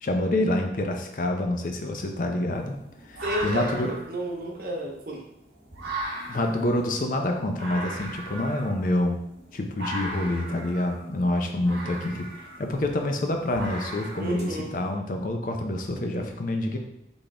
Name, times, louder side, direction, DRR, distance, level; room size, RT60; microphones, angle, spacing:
voice 1, 0.0-2.8 3.0-4.0 6.3-9.2 9.5-12.3 12.6-16.8, left 1 dB, 50° left, 3 dB, 0.5 m, -27 dB
sound 1, 2.5-14.9, right 1 dB, 85° right, 1.2 m, -38 dB
voice 2, 3.2-3.8 4.1-5.2 14.2-14.7, right 1 dB, 55° right, -1 dB, 0.9 m, -31 dB
4.1 x 3.6 x 3.3 m, 0.79 s
head